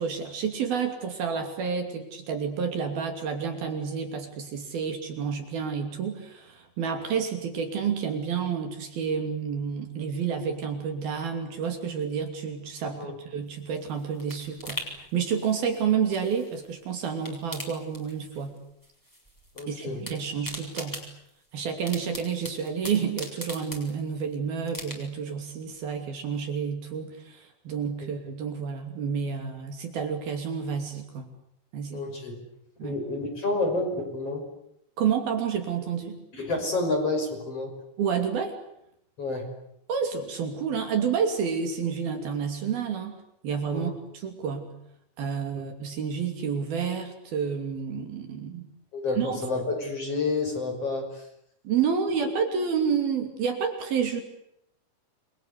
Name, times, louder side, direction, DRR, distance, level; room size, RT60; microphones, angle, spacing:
voice 1, 0.0-18.6 19.7-21.0 21.5-31.3 31.7-32.1 32.8-33.0 35.0-36.2 38.0-38.5 39.9-43.2 43.4-44.7 45.2-48.7 49.2-49.4 51.6-54.2, right 6 dB, 60° right, 5 dB, 4.4 m, -29 dB
sound 1, 13.5-16.8 17.1-18.6 18.8-19.6 19.9-24.2 24.7-25.3 25.7-25.8, equal, 5° left, 6.5 m, -41 dB
voice 2, 19.6-20.0 31.9-32.4 32.8-34.4 36.3-37.7 39.2-39.5 43.7-43.9 48.9-51.1, left 3 dB, 35° left, 4 dB, 6.7 m, -29 dB
29.5 x 23.5 x 8.3 m, 0.76 s
omnidirectional pair, 5.1 m